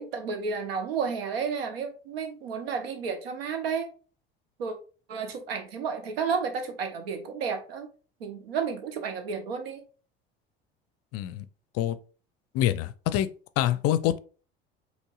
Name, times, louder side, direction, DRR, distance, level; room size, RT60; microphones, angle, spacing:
voice 1, 0.0-3.9 4.6-4.7 5.1-7.9 8.2-9.8, right 5 dB, 80° right, 0.9 m, -32 dB
voice 2, 11.1-11.4 11.7-12.0 12.5-13.3 13.6-14.2, left 12 dB, 50° left, 0.5 m, -25 dB
5.3 x 3.2 x 2.4 m
hypercardioid pair, 70°, 30 cm